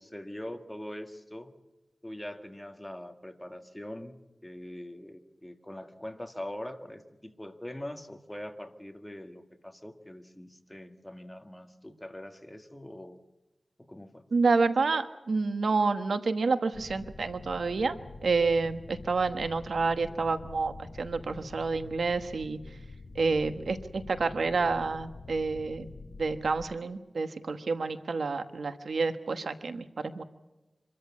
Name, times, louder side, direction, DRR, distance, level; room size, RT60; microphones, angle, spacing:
voice 1, 0.0-1.5 2.0-13.2 13.8-14.2 19.0-19.1, left 1 dB, 15° left, 7 dB, 1.9 m, -43 dB
voice 2, 14.3-22.6 23.1-25.9 26.2-30.2, right 4 dB, 85° right, 10 dB, 1.2 m, -29 dB
sound 1, 16.7-26.7, left 3 dB, 85° left, 2.1 m, -47 dB
26.0 x 13.5 x 8.4 m, 1.1 s
wide cardioid pair, 70°, 0 cm